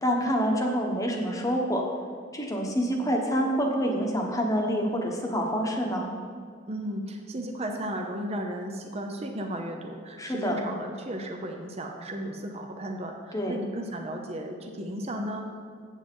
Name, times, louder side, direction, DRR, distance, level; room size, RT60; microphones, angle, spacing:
voice 1, 0.0-1.8 2.3-6.1 10.2-10.6 13.3-13.6, equal, 15° left, 0 dB, 1.1 m, -27 dB
voice 2, 6.7-15.4, right 1 dB, 30° right, 2 dB, 0.7 m, -34 dB
7.9 x 7.4 x 5.4 m, 2.1 s
head